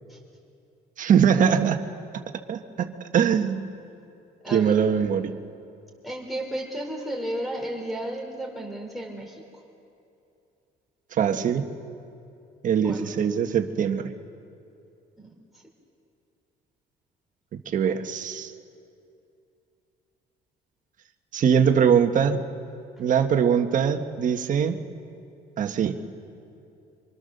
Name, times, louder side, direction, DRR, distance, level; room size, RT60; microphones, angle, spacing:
voice 1, 1.0-1.8 2.5-3.7 4.5-5.3 11.1-11.7 12.6-14.1 17.5-18.5 21.3-22.4 23.0-24.8 25.6-26.0, right 7 dB, 50° right, 6 dB, 1.4 m, -22 dB
voice 2, 4.4-4.8 6.0-9.4 12.8-13.0 15.2-15.3, right 1 dB, ahead, 1 dB, 3.3 m, -33 dB
25.5 x 24.5 x 6.7 m, 2.6 s
cardioid pair, 110°, 17 cm